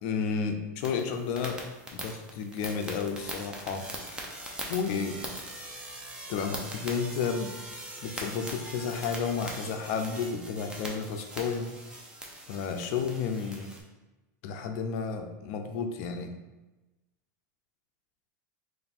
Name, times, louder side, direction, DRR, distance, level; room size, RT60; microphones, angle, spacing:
voice 1, 0.0-1.6 1.9-4.4 4.7-5.2 6.3-7.5 8.0-11.7 12.5-13.7 14.4-16.3, left 6 dB, 50° left, 6 dB, 0.4 m, -32 dB
sound 1, 0.8-13.8, right 1 dB, 10° right, 0.5 m, -41 dB
3.3 x 2.5 x 4.1 m, 1.1 s
supercardioid pair, 150°, 10 cm